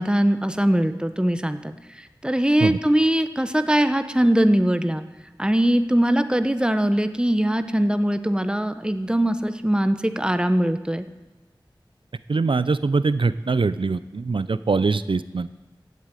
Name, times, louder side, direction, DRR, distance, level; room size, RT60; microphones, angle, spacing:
voice 1, 0.0-1.6 2.0-5.0 5.4-11.1, right 1 dB, 10° right, 10 dB, 1.0 m, -21 dB
voice 2, 12.3-15.5, right 4 dB, 80° right, 14 dB, 0.5 m, -23 dB
15.5 x 8.1 x 9.0 m, 1.1 s
wide cardioid pair, 50°, 9 cm